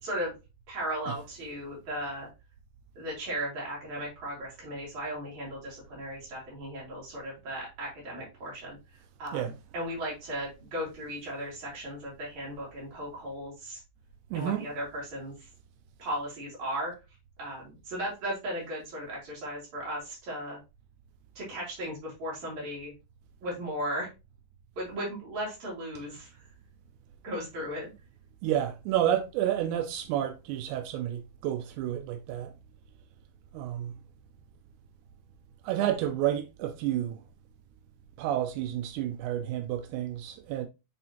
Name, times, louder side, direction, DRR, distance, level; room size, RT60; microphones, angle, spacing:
voice 1, 0.0-0.3 0.7-2.3 3.0-8.8 9.2-13.8 14.3-15.5 16.0-16.9 17.4-20.6 21.4-22.9 23.4-24.1 24.8-26.3 27.2-27.9, equal, 70° right, 4.8 m, -36 dB
voice 2, 14.3-14.7 26.0-26.1 28.4-32.5 33.5-33.9 35.6-37.2 38.2-40.7, right 11 dB, 90° right, 2.1 m, -30 dB
9.4 x 3.5 x 2.9 m
omnidirectional pair, 3.4 m